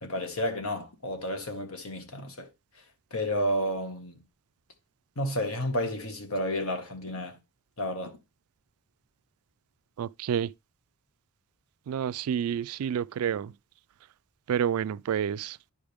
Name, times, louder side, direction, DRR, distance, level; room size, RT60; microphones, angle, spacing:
voice 1, 0.0-2.5 3.1-4.2 5.2-7.4 7.8-8.2, equal, 75° left, 1.7 m, -31 dB
voice 2, 10.0-10.5 11.9-13.5 14.5-15.6, right 8 dB, 85° right, 0.3 m, -29 dB
10.0 x 5.0 x 3.5 m
head